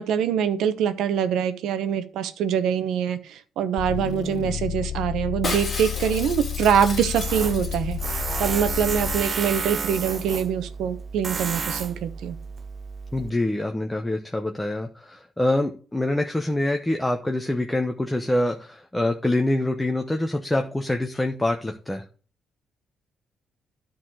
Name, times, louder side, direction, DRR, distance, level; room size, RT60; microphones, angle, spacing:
voice 1, 0.0-12.4, right 8 dB, 80° right, 11 dB, 0.8 m, -24 dB
sound 1, 3.8-9.4, left 10 dB, 60° left, 0.4 m, -31 dB
Shatter, 5.4-8.2 8.5-8.6 8.7-9.2 9.4-9.5, left 3 dB, 40° left, 2.5 m, -33 dB
Tools, 7.1-13.3, right 5 dB, 40° right, 0.4 m, -31 dB
voice 2, 13.1-22.0, left 1 dB, 10° left, 4 dB, 0.8 m, -25 dB
9.9 x 4.0 x 6.3 m, 0.39 s
cardioid pair, 90°, 0 cm